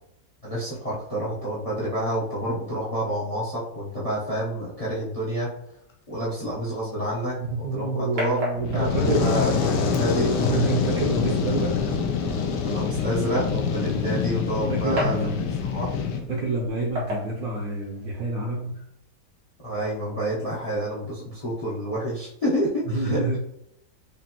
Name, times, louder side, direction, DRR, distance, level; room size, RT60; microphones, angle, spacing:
voice 1, 0.4-5.5 6.1-8.4 8.7-10.3 12.6-15.9 19.6-23.4, right 1 dB, 35° left, -7 dB, 0.6 m, -29 dB
sound 1, 7.2-18.2, equal, 90° right, 2.2 m, -38 dB
voice 2, 7.4-9.3 10.3-12.0 14.7-15.5 16.3-18.8 22.9-23.4, right 2 dB, 65° right, -2 dB, 1.1 m, -27 dB
Fire, 8.5-16.2, left 6 dB, 80° left, 1.2 m, -25 dB
5.1 x 2.5 x 2.8 m, 0.74 s
omnidirectional pair, 1.9 m